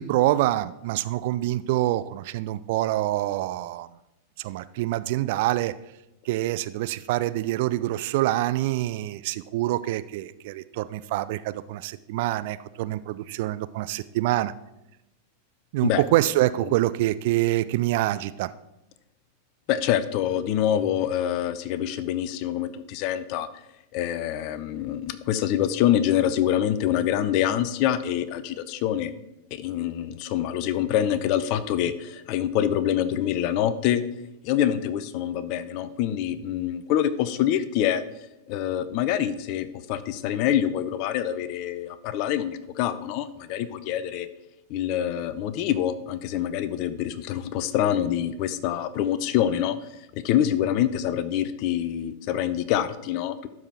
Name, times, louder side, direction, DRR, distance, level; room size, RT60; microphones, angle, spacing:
voice 1, 0.0-3.9 4.4-5.7 6.3-14.5 15.7-18.5, right 15 dB, 50° right, 15 dB, 0.3 m, -26 dB
voice 2, 19.7-23.5 23.9-29.1 29.5-34.0 34.4-38.0 38.5-44.3 44.7-49.8 50.1-53.5, left 11 dB, 45° left, 13 dB, 0.6 m, -25 dB
12.0 x 4.8 x 4.3 m, 0.90 s
figure-of-eight pair, 90°, 0 cm